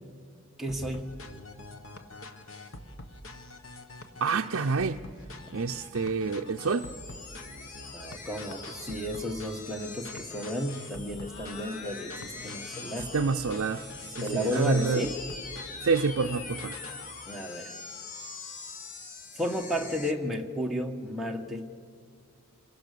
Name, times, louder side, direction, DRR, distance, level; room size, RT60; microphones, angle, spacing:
voice 1, 0.6-1.1 7.9-13.1 14.2-15.1 17.3-17.7 19.3-21.7, equal, ahead, 1.5 m, -33 dB
sound 1, 0.7-17.1, left 2 dB, 65° left, 1.6 m, -46 dB
voice 2, 4.2-5.0 5.5-6.9 13.1-15.0 15.8-16.8, right 4 dB, 60° right, 0.6 m, -28 dB
sound 2, 6.5-20.1, left 4 dB, 35° left, 1.2 m, -43 dB
27.0 x 22.5 x 6.9 m
head